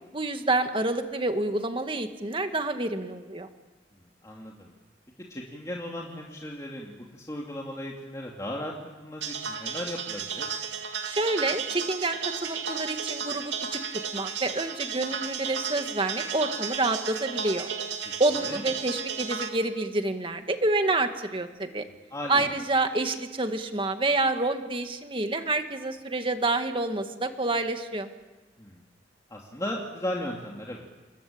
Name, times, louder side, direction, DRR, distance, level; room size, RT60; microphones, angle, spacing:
voice 1, 0.1-3.5 11.0-13.8 14.1-17.7 18.2-21.8 22.3-28.1, right 2 dB, 30° right, 6 dB, 2.0 m, -28 dB
voice 2, 4.2-4.7 5.3-8.7 9.0-10.5 18.4-18.6 22.1-22.4 28.6-28.8 29.3-30.9, left 1 dB, 20° left, -2 dB, 2.6 m, -36 dB
sound 1, 9.2-19.5, right 6 dB, 75° right, 2.7 m, -33 dB
28.5 x 22.0 x 8.8 m, 1.2 s
head